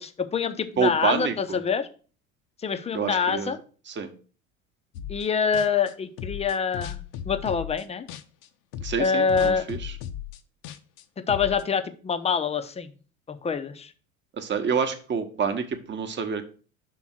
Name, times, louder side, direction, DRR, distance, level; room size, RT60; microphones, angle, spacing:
voice 1, 0.0-1.9 2.6-3.6 5.1-8.1 9.0-9.7 11.2-12.9 13.3-13.9, left 6 dB, 15° left, 9 dB, 0.6 m, -26 dB
voice 2, 0.8-1.6 2.9-3.5 3.9-4.1 8.8-9.9 14.3-16.4, right 6 dB, 25° right, 7 dB, 1.0 m, -27 dB
sound 1, 4.9-5.3 5.5-8.5 8.7-11.6, left 10 dB, 50° left, 0.7 m, -36 dB
6.1 x 3.5 x 5.9 m, 0.39 s
figure-of-eight pair, 75°, 41 cm